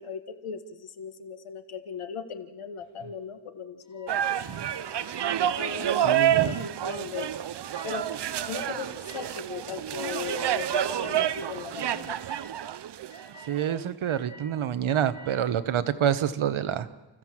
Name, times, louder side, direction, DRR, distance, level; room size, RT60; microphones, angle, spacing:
voice 1, 0.0-4.1 4.5-4.6 5.5-7.3 7.8-8.1 8.5-12.2, left 6 dB, 85° left, 8 dB, 1.8 m, -38 dB
sound 1, 3.8-5.7 6.4-6.7 7.7-7.9 9.0-9.2 10.3-10.5 11.0-11.5 12.0-12.5 13.1-13.5 14.0-14.5 14.9-15.3, left 2 dB, 35° left, 6.5 m, -49 dB
sound 2, 4.1-13.8, right 10 dB, 55° right, 0.7 m, -29 dB
voice 2, 6.0-6.6 13.5-16.9, right 9 dB, 70° right, 12 dB, 1.2 m, -27 dB
30.0 x 14.5 x 7.7 m, 1.1 s
wide cardioid pair, 150°, 49 cm